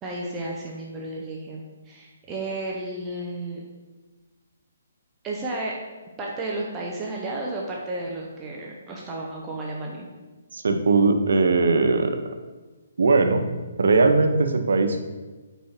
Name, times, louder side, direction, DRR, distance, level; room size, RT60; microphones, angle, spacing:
voice 1, 0.0-3.6 5.2-5.8 6.2-10.1, right 2 dB, 15° right, -3 dB, 0.7 m, -32 dB
voice 2, 10.5-12.1 13.0-13.4 13.8-15.0, right 3 dB, 75° right, 6 dB, 0.8 m, -19 dB
4.5 x 4.1 x 5.6 m, 1.2 s
hypercardioid pair, 160°, 0 cm